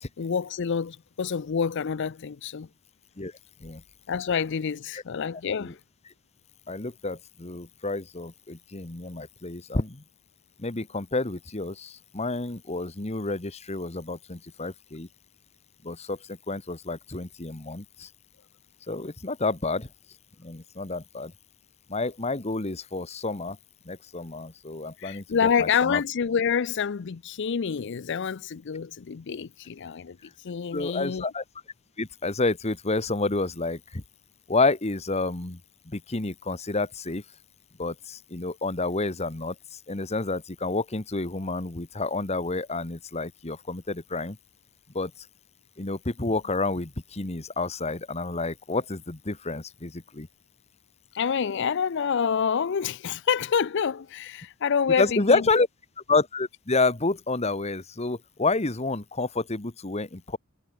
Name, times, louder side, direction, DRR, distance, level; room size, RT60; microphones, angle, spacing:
voice 1, 0.2-2.7 4.1-5.8 25.0-30.2 30.4-31.3 51.1-55.4, left 6 dB, 55° left, 0.5 m, -27 dB
voice 2, 6.7-10.0 10.6-15.1 15.8-18.1 18.9-19.9 20.4-21.3 21.9-23.6 23.8-26.0 30.7-31.4 32.0-34.0 34.5-35.6 35.8-37.2 37.8-44.4 44.9-45.3 45.8-50.3 55.0-55.7 56.1-60.4, left 3 dB, 30° left, 1.3 m, -29 dB
head